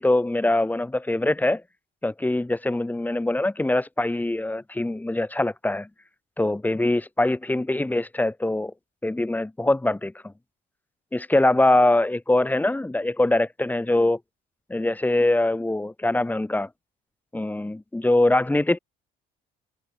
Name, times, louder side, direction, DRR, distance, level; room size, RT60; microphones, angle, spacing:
voice 1, 0.0-1.6 2.0-5.9 6.4-8.7 9.0-10.3 11.1-14.2 14.7-16.7 17.3-18.8, left 2 dB, 10° left, 7.1 m, -23 dB
cardioid pair, 110°, 17 cm